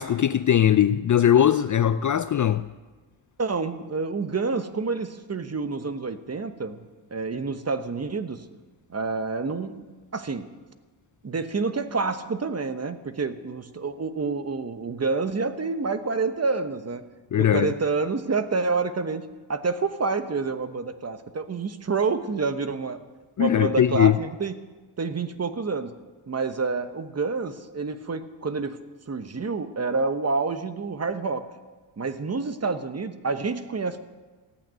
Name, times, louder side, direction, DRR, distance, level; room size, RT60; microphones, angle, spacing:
voice 1, 0.0-2.7 17.3-17.7 23.4-24.2, left 10 dB, 40° left, 0.4 m, -20 dB
voice 2, 3.4-6.8 7.1-8.4 8.9-9.9 10.1-10.5 11.2-17.0 17.4-19.2 19.5-23.0 23.4-24.6 25.0-25.9 26.3-28.8 29.1-31.5 32.0-34.0, right 4 dB, 30° right, 1.1 m, -28 dB
15.0 x 8.7 x 9.3 m
cardioid pair, 95°, 50 cm